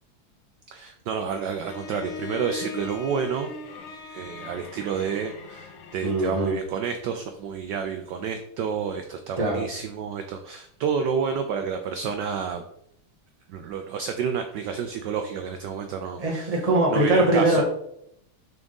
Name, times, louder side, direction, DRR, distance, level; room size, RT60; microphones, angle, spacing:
voice 1, 0.7-3.5 4.1-12.6 13.5-16.5 16.9-17.6, right 6 dB, 75° right, 6 dB, 1.0 m, -30 dB
Bowed string instrument, 1.7-6.5, left 6 dB, 75° left, 1.7 m, -40 dB
voice 2, 6.0-6.6 9.4-9.6 16.2-17.6, right 1 dB, 20° right, 0 dB, 1.1 m, -22 dB
6.0 x 3.6 x 5.3 m, 0.73 s
omnidirectional pair, 2.4 m